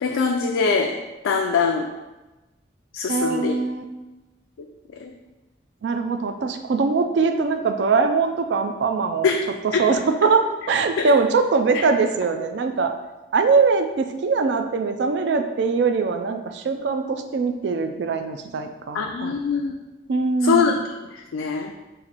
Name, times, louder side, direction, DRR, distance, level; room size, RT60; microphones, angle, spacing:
voice 1, 0.0-0.9 1.2-1.9 2.9-3.6 4.6-4.7 5.0-5.1 9.2-10.3 11.0-11.1 18.9-19.7 20.4-21.7, left 5 dB, 90° left, 1 dB, 0.3 m, -23 dB
voice 2, 3.1-3.8 5.8-9.3 9.8-12.9 13.3-19.3 20.1-20.7, right 4 dB, 60° right, 6 dB, 0.3 m, -22 dB
4.2 x 2.5 x 4.0 m, 1.1 s
head